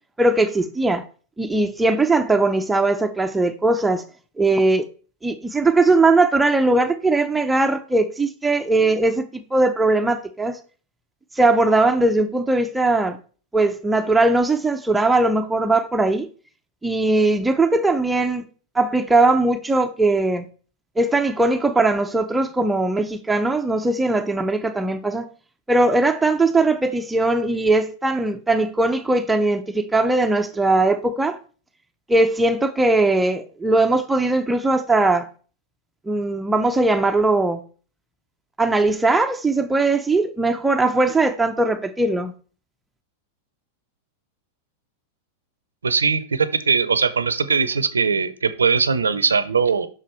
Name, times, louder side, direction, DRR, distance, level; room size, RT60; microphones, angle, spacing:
voice 1, 0.2-1.1 1.4-4.0 4.4-4.8 5.2-10.6 11.4-13.2 13.5-16.3 16.8-18.4 18.7-20.5 21.0-25.3 25.7-31.4 32.1-35.3 36.1-37.6 38.6-42.3, right 2 dB, 10° right, 0.6 m, -19 dB
voice 2, 45.8-49.9, right 5 dB, 85° right, 0.6 m, -20 dB
6.1 x 4.7 x 4.5 m
hypercardioid pair, 100°, 0 cm